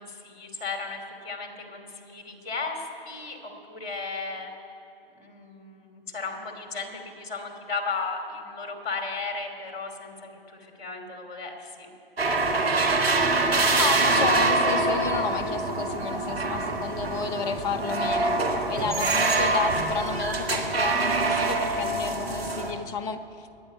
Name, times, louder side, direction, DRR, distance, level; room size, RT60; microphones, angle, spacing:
voice 1, 0.0-4.5 5.1-11.9, left 4 dB, 45° left, 4 dB, 2.6 m, -35 dB
sound 1, 12.2-22.7, right 3 dB, 80° right, 2.0 m, -25 dB
voice 2, 13.8-18.4 18.7-23.2, left 6 dB, 10° left, 12 dB, 0.4 m, -31 dB
21.5 x 9.1 x 6.6 m, 2.7 s
figure-of-eight pair, 110°, 30 cm